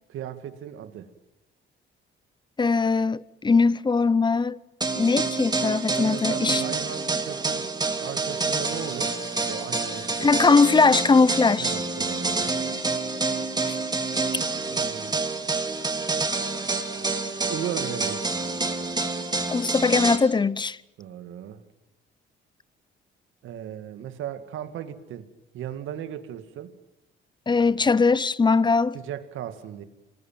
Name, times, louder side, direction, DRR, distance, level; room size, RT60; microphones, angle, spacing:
voice 1, 0.1-1.1 6.0-7.7 8.0-9.2 9.5-10.5 11.6-12.6 14.6-15.2 17.5-18.4 21.0-21.6 23.4-25.3 25.5-26.7 28.9-29.8, right 10 dB, 85° right, 2.2 m, -36 dB
voice 2, 2.6-4.6 5.0-6.6 10.2-11.7 13.6-13.7 19.5-20.8 27.5-29.0, left 4 dB, 25° left, 0.8 m, -20 dB
sound 1, 4.8-20.2, right 3 dB, 20° right, 2.9 m, -28 dB
27.0 x 20.0 x 9.3 m
cardioid pair, 90°, 20 cm